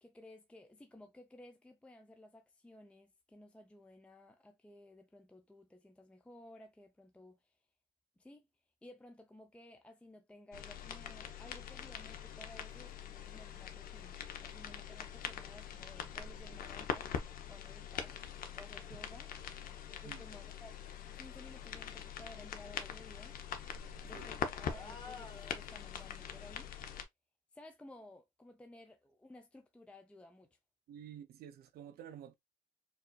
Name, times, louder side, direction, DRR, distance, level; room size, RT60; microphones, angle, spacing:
voice 1, 0.0-7.5 8.2-8.5 8.8-17.1 17.5-18.2 18.6-19.3 20.0-20.7 21.1-23.4 24.0-26.7 27.5-30.6, left 1 dB, 5° left, 0.5 m, -56 dB
sound 1, 10.5-27.0, left 8 dB, 60° left, 0.7 m, -44 dB
sound 2, 24.6-26.2, left 3 dB, 30° left, 1.4 m, -51 dB
voice 2, 30.9-32.3, right 10 dB, 65° right, 0.6 m, -50 dB
4.6 x 2.6 x 2.3 m
cardioid pair, 110°, 17 cm